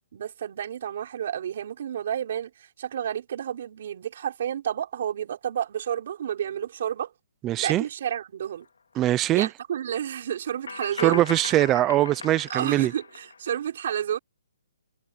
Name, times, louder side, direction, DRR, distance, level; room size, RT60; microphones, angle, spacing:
voice 1, 0.1-7.1 7.6-8.7 9.3-11.2 12.5-14.2, right 9 dB, 35° right, 6.0 m, -30 dB
voice 2, 7.4-7.8 9.0-9.5 11.0-12.9, right 14 dB, 10° right, 0.4 m, -22 dB
sound 1, 8.6-8.7 10.7-13.5, left 5 dB, 90° left, 3.9 m, -38 dB
hypercardioid pair, 180°, 0 cm